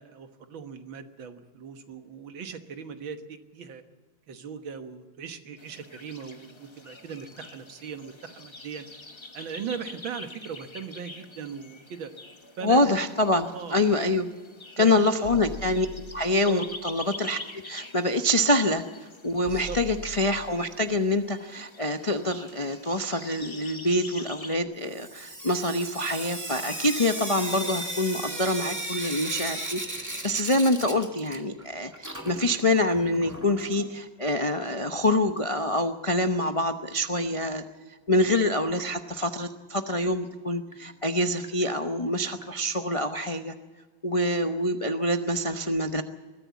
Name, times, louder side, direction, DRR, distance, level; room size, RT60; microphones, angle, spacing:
voice 1, 0.0-3.8 4.3-8.9 9.3-12.1 12.6-13.0 13.5-13.8 14.8-15.0 16.5-16.6 19.5-19.8, right 6 dB, 80° right, 8 dB, 2.2 m, -39 dB
sound 1, 5.6-24.6, left 3 dB, 20° left, 0.8 m, -46 dB
voice 2, 12.6-14.3 14.8-15.9 16.1-37.6 38.1-43.5 44.0-46.0, left 1 dB, 40° left, 6 dB, 0.4 m, -26 dB
sound 2, 15.2-16.5 18.4-18.5 19.4-20.8 22.6-22.7 23.2-23.3, left 5 dB, 85° left, 4.5 m, -42 dB
Sink (filling or washing) / Drip, 24.9-31.7 31.9-33.9 35.0-35.1 35.4-35.5 35.8-35.9 38.8-38.9 39.4-39.5 40.0-40.1 40.7-40.8 41.4-41.5 42.4-42.5, right 1 dB, 10° right, 1.8 m, -36 dB
22.0 x 14.5 x 8.5 m, 1.3 s
omnidirectional pair, 2.1 m